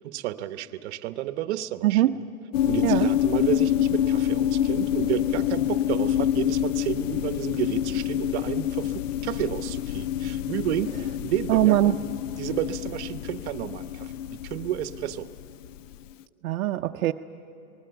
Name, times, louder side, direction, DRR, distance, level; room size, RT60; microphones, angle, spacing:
voice 1, 0.0-2.2 2.6-12.0 12.4-15.3, right 13 dB, 50° right, 11 dB, 1.0 m, -31 dB
voice 2, 1.8-2.1 2.8-3.1 11.5-12.0 16.4-17.1, right 15 dB, 70° right, 5 dB, 0.7 m, -21 dB
sound 1, 2.5-15.9, left 11 dB, 60° left, 0.5 m, -27 dB
27.5 x 20.0 x 6.9 m, 2.9 s
hypercardioid pair, 145°, 43 cm